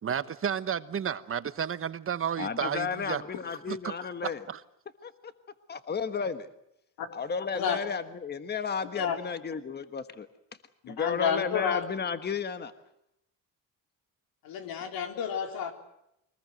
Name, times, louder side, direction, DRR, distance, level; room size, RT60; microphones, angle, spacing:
voice 1, 0.0-3.2 3.7-3.8 4.5-4.6, right 8 dB, 40° right, 1.0 m, -32 dB
voice 2, 2.4-4.4 5.0-5.3 5.7-6.5 7.1-10.3 10.9-12.7, left 5 dB, 30° left, 1.4 m, -33 dB
voice 3, 10.8-11.8 14.4-15.7, left 7 dB, 85° left, 3.9 m, -30 dB
24.0 x 20.0 x 7.8 m
cardioid pair, 115°, 35 cm